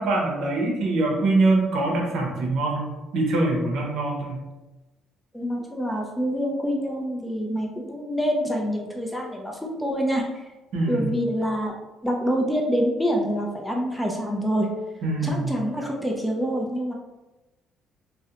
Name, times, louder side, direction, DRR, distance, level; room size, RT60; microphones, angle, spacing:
voice 1, 0.0-2.9 3.1-4.4 10.7-11.1 15.0-15.5, right 2 dB, 70° right, -1 dB, 0.7 m, -23 dB
voice 2, 5.3-10.4 10.9-11.7 12.0-14.7 15.2-16.9, equal, 5° left, -1 dB, 0.4 m, -26 dB
2.5 x 2.0 x 2.8 m, 1.1 s
cardioid pair, 105°, 0 cm